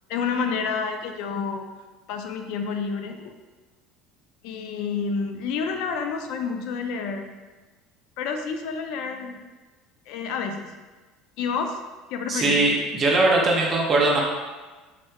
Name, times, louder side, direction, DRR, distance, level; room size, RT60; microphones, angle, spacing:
voice 1, 0.1-1.6 2.1-3.4 4.4-7.3 8.2-9.4 10.1-10.7 11.4-11.8 12.1-12.6, left 5 dB, 70° left, 5 dB, 0.3 m, -29 dB
voice 2, 12.3-14.2, right 2 dB, 30° right, -2 dB, 0.4 m, -20 dB
3.2 x 2.9 x 2.3 m, 1.3 s
cardioid pair, 140°, 0 cm